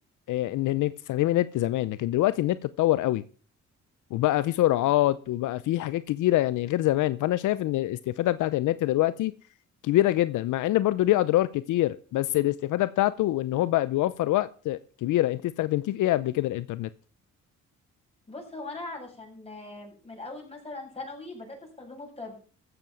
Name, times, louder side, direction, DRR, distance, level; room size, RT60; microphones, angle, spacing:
voice 1, 0.3-3.2 4.1-9.3 9.8-16.9, left 15 dB, 80° left, 0.6 m, -25 dB
voice 2, 18.3-22.4, left 2 dB, 20° left, 7.7 m, -40 dB
15.0 x 7.9 x 6.2 m
cardioid pair, 90°, 30 cm